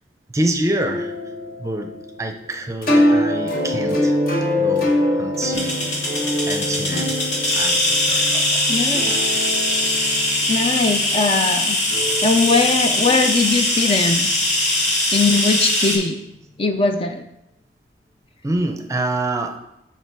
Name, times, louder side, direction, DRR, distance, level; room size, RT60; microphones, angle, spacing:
voice 1, 0.3-1.1 1.6-4.2 4.6-6.0 6.5-7.2 7.5-8.6 9.3-9.4 18.4-19.6, right 1 dB, 15° right, 5 dB, 0.6 m, -26 dB
Gentle intro guzheng, 0.8-14.8, left 1 dB, 50° left, 1.3 m, -24 dB
sound 1, 5.5-16.0, left 1 dB, 90° left, 2.4 m, -21 dB
voice 2, 8.7-9.1 10.5-11.8 12.2-14.3 15.1-16.2 16.6-17.2, left 3 dB, 30° left, 5 dB, 0.4 m, -20 dB
6.7 x 5.9 x 4.7 m, 0.87 s
head